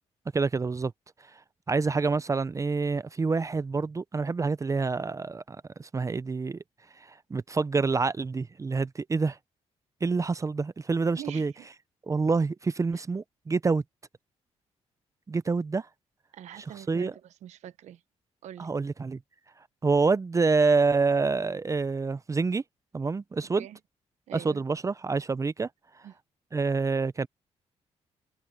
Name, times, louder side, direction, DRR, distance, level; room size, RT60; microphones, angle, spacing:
voice 1, 0.3-0.9 1.7-6.6 7.3-9.4 10.0-11.5 12.1-13.8 15.3-15.9 16.9-17.1 18.6-19.2 19.8-22.6 22.9-23.7 24.3-25.7 26.5-27.3, right 4 dB, 25° right, 0.6 m, -27 dB
voice 2, 10.9-11.7 16.3-18.0 18.4-18.7 23.4-23.8 24.3-24.6 26.0-26.1, right 11 dB, 80° right, 1.1 m, -44 dB
cardioid pair, 80°, 12 cm